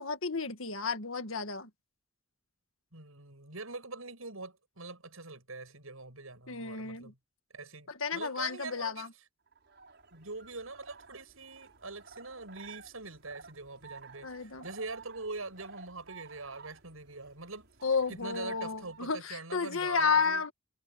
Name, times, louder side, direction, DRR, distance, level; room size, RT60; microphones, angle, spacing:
voice 1, 0.0-1.7 6.5-7.1 7.9-9.1 14.2-14.6 17.8-20.5, left 5 dB, 75° left, 1.8 m, -32 dB
voice 2, 2.9-7.2 7.5-9.1 10.1-17.7 18.1-20.5, right 3 dB, 90° right, 7.6 m, -44 dB
sound 1, 9.5-19.2, right 4 dB, 55° right, 6.6 m, -54 dB
head